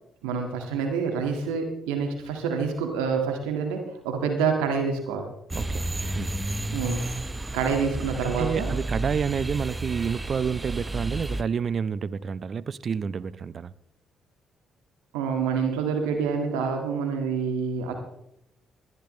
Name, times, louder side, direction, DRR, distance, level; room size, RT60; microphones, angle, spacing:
voice 1, 0.2-5.2 6.7-7.0 7.5-8.8 15.1-17.9, right 5 dB, 90° right, 1.8 m, -27 dB
sound 1, 5.5-11.4, right 2 dB, 20° right, 0.8 m, -31 dB
voice 2, 5.5-5.9 6.1-6.3 8.2-13.7, right 6 dB, 50° right, 0.6 m, -29 dB
18.0 x 11.0 x 3.2 m
supercardioid pair, 55°, 0 cm